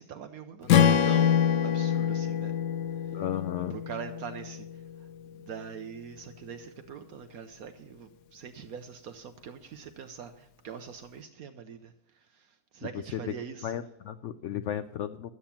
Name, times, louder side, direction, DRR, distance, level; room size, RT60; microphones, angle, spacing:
voice 1, 0.0-2.5 3.7-4.7 5.5-11.9 12.3-12.5 12.7-13.8, right 7 dB, 70° right, 8 dB, 1.2 m, -43 dB
Strum, 0.7-5.0, left 8 dB, 85° left, 1.3 m, -25 dB
voice 2, 3.1-3.8 13.1-13.3 13.6-15.3, left 10 dB, 65° left, 11 dB, 0.7 m, -34 dB
12.5 x 8.7 x 5.8 m, 0.84 s
omnidirectional pair, 1.7 m